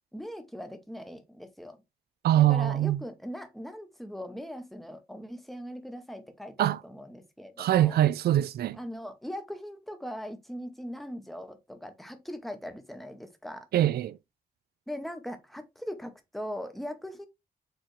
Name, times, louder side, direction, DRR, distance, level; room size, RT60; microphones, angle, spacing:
voice 1, 0.1-1.8 2.4-8.0 8.7-13.7 14.9-17.3, equal, ahead, 0.7 m, -40 dB
voice 2, 2.2-3.0 6.6-6.8 7.6-8.8 13.7-14.2, right 12 dB, 80° right, 0.4 m, -23 dB
4.5 x 3.8 x 3.1 m
wide cardioid pair, 160°, 16 cm